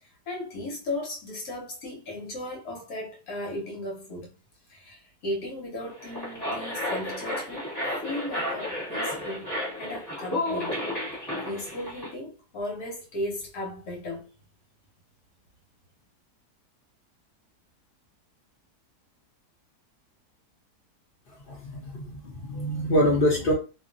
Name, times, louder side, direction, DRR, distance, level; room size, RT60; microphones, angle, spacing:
voice 1, 0.0-4.3 4.7-7.7 8.0-9.5 9.8-10.8 11.4-14.3, left 1 dB, 70° left, 1.4 m, -36 dB
sound 1, 5.9-12.1, left 1 dB, 10° left, 1.4 m, -32 dB
voice 2, 21.5-23.5, equal, 45° left, 0.7 m, -25 dB
2.8 x 2.5 x 2.5 m
omnidirectional pair, 1.7 m